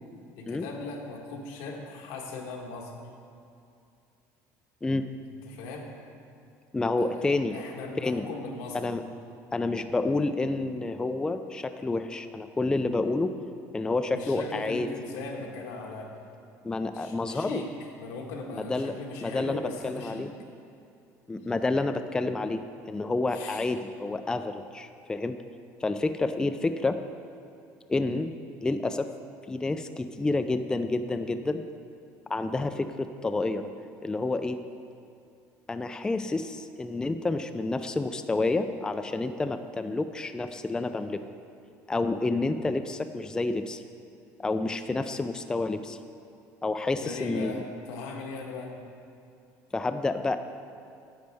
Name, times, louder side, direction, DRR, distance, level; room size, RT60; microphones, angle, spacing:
voice 1, 0.4-2.9 5.2-5.9 6.9-8.9 14.1-16.1 16.9-17.7 18.0-20.3 23.3-23.6 47.0-48.7, left 3 dB, 90° left, 1 dB, 1.4 m, -38 dB
voice 2, 6.7-7.5 8.0-8.2 8.7-9.0 9.5-13.3 13.7-14.9 16.6-17.6 18.5-18.9 19.2-20.3 21.3-22.6 22.9-25.4 25.8-27.0 27.9-28.3 28.6-29.1 29.5-31.6 32.3-33.7 34.0-34.6 35.7-41.2 41.9-43.8 44.4-46.0 46.6-47.5 49.7-50.4, left 2 dB, 10° left, 9 dB, 0.3 m, -29 dB
10.5 x 8.0 x 3.5 m, 2.6 s
cardioid pair, 120°, 7 cm